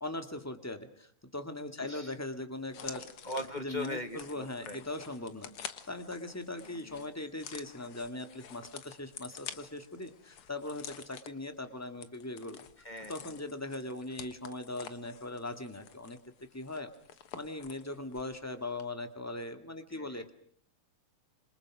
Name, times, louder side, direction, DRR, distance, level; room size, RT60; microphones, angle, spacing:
voice 1, 0.0-3.1 3.6-12.7 13.1-16.2 16.5-16.9 17.3-20.3, left 2 dB, 5° left, 7 dB, 1.8 m, -40 dB
voice 2, 1.8-2.1 3.2-4.8 6.6-7.1 12.8-13.4 19.9-20.3, left 1 dB, 25° left, 8 dB, 1.4 m, -41 dB
sound 1, 2.7-18.4 18.7-18.8, left 8 dB, 80° left, 2.3 m, -49 dB
27.0 x 26.5 x 6.3 m, 0.64 s
omnidirectional pair, 2.4 m